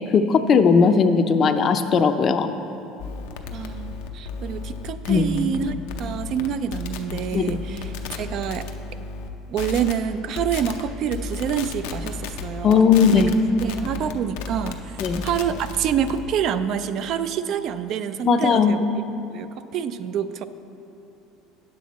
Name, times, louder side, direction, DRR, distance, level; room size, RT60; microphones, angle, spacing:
voice 1, 0.1-2.5 5.1-5.3 7.3-7.6 12.6-13.3 15.0-15.2 18.2-18.8, left 6 dB, 40° left, 9 dB, 0.5 m, -18 dB
Audio Jack Plug, 3.0-9.3 9.6-9.9 10.4-10.8 11.1-16.3, left 4 dB, 85° left, 0.6 m, -34 dB
voice 2, 3.5-8.7 9.5-13.2 13.6-18.8 19.3-20.4, right 8 dB, 55° right, 12 dB, 0.3 m, -27 dB
9.2 x 7.6 x 4.1 m, 2.9 s
supercardioid pair, 120°, 0 cm